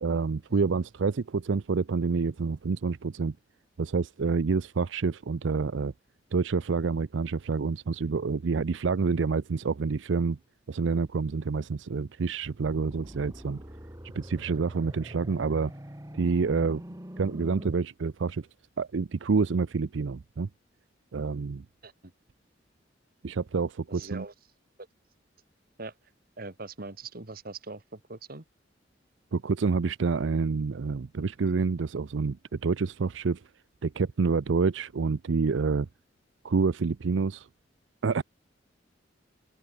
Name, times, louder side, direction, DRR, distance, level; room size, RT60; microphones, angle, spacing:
voice 1, 0.0-3.4 3.8-5.9 6.3-10.4 10.7-13.6 14.1-15.7 16.1-16.8 17.2-18.5 18.8-20.5 21.1-21.6 23.2-24.2 29.3-32.4 32.6-33.4 33.8-35.9 36.4-37.5 38.0-38.2, right 4 dB, 85° right, 0.5 m, -28 dB
sound 1, 12.7-17.7, equal, 20° right, 2.2 m, -44 dB
voice 2, 23.9-24.3 25.8-25.9 26.4-28.4, right 3 dB, 50° right, 2.0 m, -42 dB
open air
head